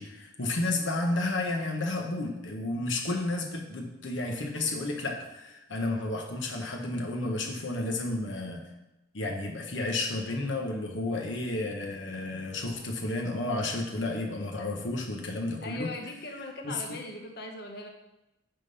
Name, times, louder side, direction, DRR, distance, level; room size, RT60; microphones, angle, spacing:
voice 1, 0.0-8.7 9.1-15.9 16.6-16.8, left 2 dB, 75° left, 2 dB, 1.3 m, -32 dB
voice 2, 15.6-17.9, left 2 dB, 55° left, 2 dB, 1.1 m, -40 dB
9.0 x 3.9 x 5.5 m, 0.94 s
head